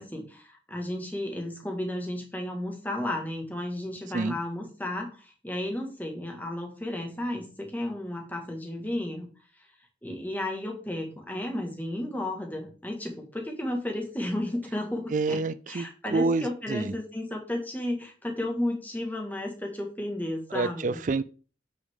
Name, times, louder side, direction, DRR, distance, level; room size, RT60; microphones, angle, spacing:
voice 1, 0.0-9.3 9.6-9.7 10.0-21.0, left 1 dB, 10° left, 1.8 m, -33 dB
voice 2, 15.1-16.9 20.5-21.2, right 3 dB, 45° right, 0.4 m, -28 dB
8.9 x 6.3 x 3.7 m
head